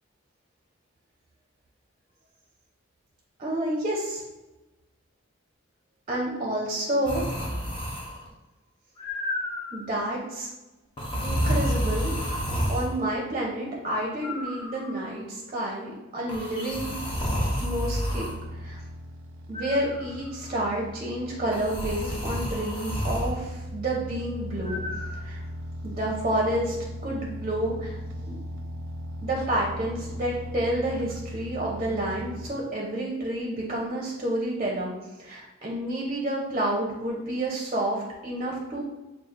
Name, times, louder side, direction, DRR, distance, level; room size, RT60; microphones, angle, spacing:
voice 1, 3.4-4.2 6.1-7.2 9.7-10.5 11.2-12.1 12.7-17.0 17.6-18.8 19.5-24.8 25.2-25.4 25.8-26.8 27.0-28.0 28.2-28.3 29.2-34.9 35.2-38.8, right 1 dB, 30° right, -3 dB, 0.6 m, -29 dB
sound 1, 7.1-8.3 9.0-9.9 11.0-12.9 14.2-15.1 16.3-18.3 19.5-20.3 21.5-23.3 24.7-25.1, equal, 25° left, 0.8 m, -30 dB
sound 2, 17.9-32.5, equal, 75° right, 0.4 m, -38 dB
5.8 x 2.4 x 2.5 m, 1.1 s
head